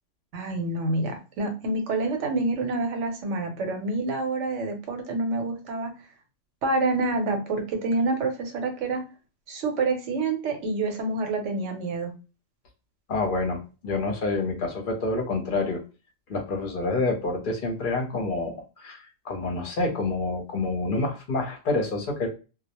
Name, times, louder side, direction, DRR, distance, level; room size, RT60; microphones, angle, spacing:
voice 1, 0.3-5.9 6.6-9.0 9.5-12.1, right 2 dB, 70° right, 4 dB, 1.0 m, -27 dB
voice 2, 13.1-15.8 16.3-22.3, left 3 dB, 50° left, 3 dB, 0.7 m, -28 dB
2.2 x 2.0 x 2.8 m, 0.33 s
omnidirectional pair, 1.3 m